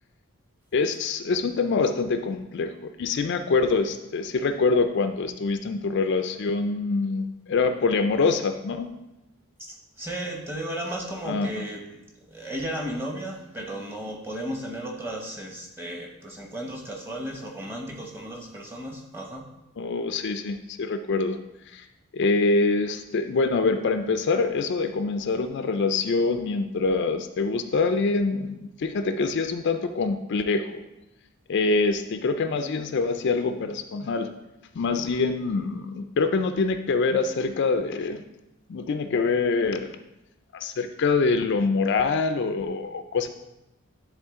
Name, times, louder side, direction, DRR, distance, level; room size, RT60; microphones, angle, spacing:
voice 1, 0.7-8.9 11.3-11.5 19.8-21.4 21.7-21.9 22.1-30.8 31.5-34.3 34.8-38.2 38.7-39.9 40.5-43.3, left 4 dB, 50° left, 8 dB, 0.3 m, -25 dB
voice 2, 9.6-11.8 12.3-19.4, right 1 dB, 10° right, 1 dB, 0.9 m, -34 dB
10.5 x 3.6 x 3.6 m, 0.95 s
head